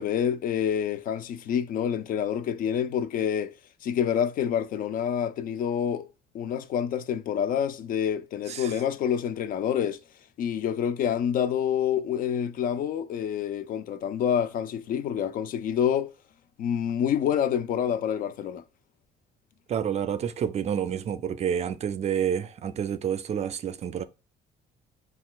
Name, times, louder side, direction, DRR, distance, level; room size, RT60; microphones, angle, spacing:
voice 1, 0.0-3.5 3.8-6.1 6.3-10.0 10.4-16.1 16.6-18.6, left 9 dB, 55° left, 0.4 m, -27 dB
voice 2, 8.5-8.8 19.7-24.0, right 8 dB, 40° right, 0.4 m, -29 dB
5.8 x 2.3 x 2.3 m
cardioid pair, 110°, 17 cm